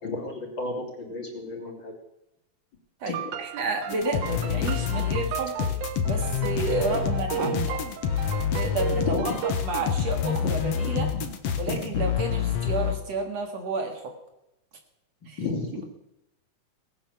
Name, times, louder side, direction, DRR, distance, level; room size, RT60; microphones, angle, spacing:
voice 1, 0.0-1.9 7.4-7.5 9.1-9.3 10.4-10.5 11.8-12.0 15.2-15.8, left 3 dB, 35° left, 0 dB, 3.3 m, -32 dB
voice 2, 3.0-5.6 6.1-7.8 8.5-11.1 11.6-14.1 15.3-15.4, right 2 dB, 60° right, 4 dB, 3.1 m, -31 dB
sound 1, 3.0-9.5, right 10 dB, 75° right, 2.3 m, -34 dB
sound 2, 3.9-13.0, left 8 dB, 60° left, 2.1 m, -28 dB
18.5 x 10.5 x 7.2 m, 0.85 s
omnidirectional pair, 3.6 m